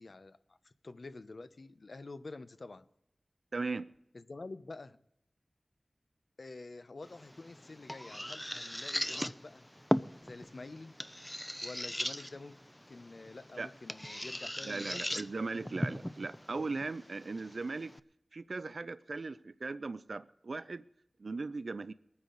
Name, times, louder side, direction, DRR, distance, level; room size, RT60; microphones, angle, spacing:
voice 1, 0.0-2.9 4.1-5.0 6.4-9.7 10.2-10.9 11.6-12.6 12.9-15.2, left 3 dB, 70° left, 0.7 m, -48 dB
voice 2, 3.5-3.9 13.6-13.7 14.6-18.0 18.3-20.8 21.2-21.9, right 3 dB, 75° right, 0.4 m, -38 dB
sound 1, 7.0-18.0, equal, 10° left, 0.5 m, -39 dB
21.5 x 9.6 x 3.9 m
wide cardioid pair, 50°, 0 cm